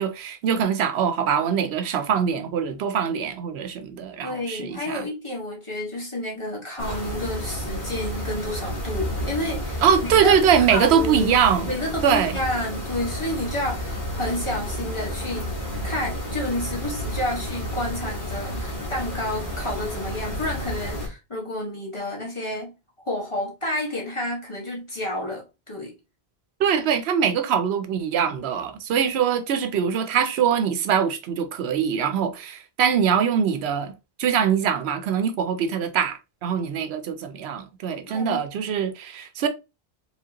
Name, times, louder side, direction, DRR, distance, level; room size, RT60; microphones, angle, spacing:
voice 1, 0.0-5.1 9.8-11.7 12.0-12.3 26.6-33.9 34.2-39.5, right 7 dB, 85° right, 0.8 m, -23 dB
voice 2, 4.2-9.8 10.2-10.4 10.7-11.4 11.7-15.5 15.8-22.7 23.0-25.9 38.1-38.4, left 1 dB, 30° left, 1.7 m, -30 dB
sound 1, 6.8-21.1, equal, 45° left, 1.7 m, -31 dB
4.8 x 3.4 x 2.8 m
omnidirectional pair, 1.0 m